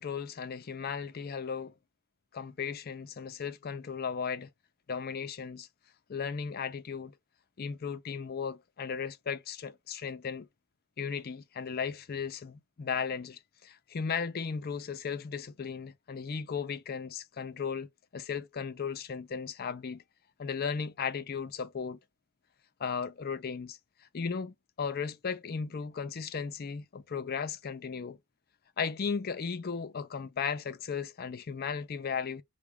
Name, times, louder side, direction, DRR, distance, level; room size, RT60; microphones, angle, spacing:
voice 1, 0.0-1.7 2.3-4.5 4.9-5.7 6.1-7.1 7.6-10.5 11.0-20.0 20.4-22.0 22.8-23.8 24.1-28.2 28.8-32.4, left 6 dB, 45° left, 0.4 m, -36 dB
5.8 x 2.2 x 3.4 m
head